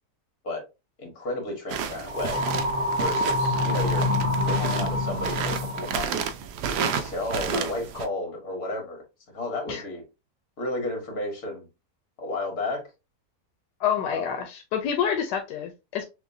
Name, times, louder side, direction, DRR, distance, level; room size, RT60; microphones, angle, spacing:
voice 1, 1.0-2.4 3.0-4.1 4.5-6.3 6.8-9.0 9.3-10.0 10.6-11.7 12.2-12.8 14.1-14.4, left 2 dB, 65° left, 2.0 m, -32 dB
sound 1, 1.7-8.1, right 6 dB, 85° right, 1.2 m, -31 dB
sound 2, 2.1-6.0, left 2 dB, 40° right, 0.9 m, -26 dB
voice 2, 13.8-16.0, left 8 dB, 90° left, 1.2 m, -28 dB
6.1 x 2.3 x 2.6 m
omnidirectional pair, 1.7 m